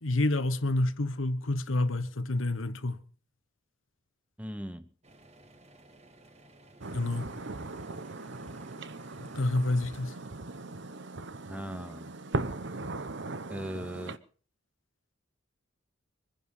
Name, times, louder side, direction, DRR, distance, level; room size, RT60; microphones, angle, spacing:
voice 1, 0.0-3.0 6.9-7.3 9.2-10.2, left 2 dB, 75° left, 1.2 m, -28 dB
voice 2, 4.4-4.9 11.5-12.1 13.5-14.2, equal, 5° right, 1.0 m, -39 dB
sound 1, 5.0-12.0, right 1 dB, 30° right, 1.9 m, -58 dB
sound 2, 6.8-14.2, right 2 dB, 60° right, 1.0 m, -39 dB
24.0 x 10.5 x 5.6 m
head